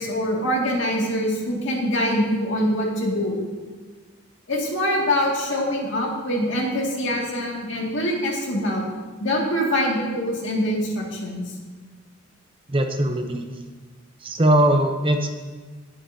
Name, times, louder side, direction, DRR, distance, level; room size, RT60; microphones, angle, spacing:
voice 1, 0.0-3.4 4.5-8.8 9.2-11.5, equal, 65° left, -2 dB, 2.1 m, -24 dB
voice 2, 12.7-13.5 14.2-15.3, right 1 dB, 25° right, 5 dB, 0.6 m, -20 dB
17.5 x 7.8 x 2.7 m, 1.4 s
head